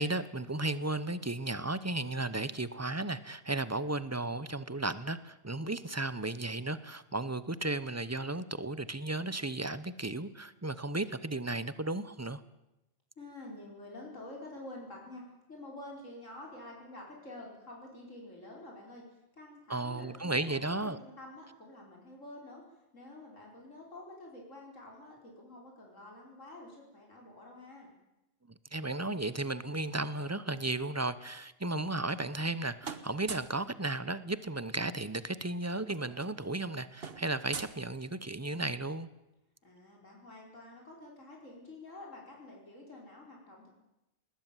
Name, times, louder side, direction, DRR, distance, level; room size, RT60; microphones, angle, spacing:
voice 1, 0.0-12.4 19.7-21.0 28.7-39.1, right 2 dB, 15° right, 15 dB, 0.8 m, -34 dB
voice 2, 13.2-19.0 19.3-22.6 22.9-27.9 39.6-43.7, left 1 dB, 85° left, -1 dB, 5.5 m, -48 dB
sound 1, 31.8-32.5 32.8-33.6 35.0-35.1 35.3-35.6 35.8-38.5, right 5 dB, 50° right, 1.5 m, -45 dB
20.5 x 19.5 x 9.2 m, 0.92 s
omnidirectional pair, 1.3 m